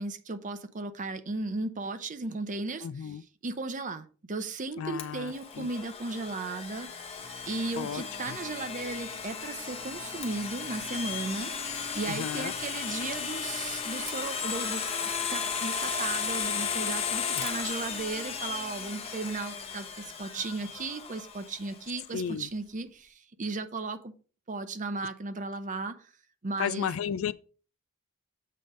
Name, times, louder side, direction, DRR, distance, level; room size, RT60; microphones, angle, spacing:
voice 1, 0.0-3.2 3.4-7.1 7.5-11.5 11.9-14.8 15.3-24.1 24.5-26.1 26.4-26.9, right 3 dB, 40° right, 0.7 m, -35 dB
voice 2, 2.8-3.2 4.8-5.7 7.8-8.4 12.1-12.5 17.3-17.5 22.1-22.5 26.6-27.3, left 7 dB, 70° left, 0.3 m, -34 dB
Domestic sounds home sounds, 5.0-21.8, left 6 dB, 30° left, 1.0 m, -35 dB
sound 1, 7.2-13.8, equal, 60° right, 1.7 m, -53 dB
7.6 x 3.4 x 5.2 m
head